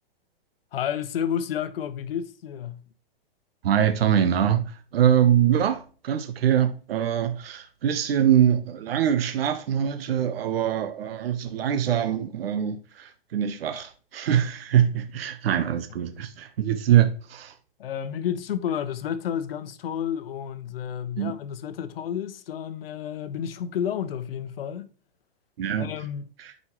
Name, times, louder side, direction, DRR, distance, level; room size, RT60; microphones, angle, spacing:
voice 1, 0.7-2.8 16.1-16.2 17.8-24.9 25.8-26.3, left 9 dB, 70° left, 0.9 m, -31 dB
voice 2, 3.6-17.5 21.2-21.3 25.6-25.9 26.4-26.5, right 10 dB, 70° right, 0.9 m, -23 dB
9.6 x 5.3 x 3.0 m
hypercardioid pair, 165°, 30 cm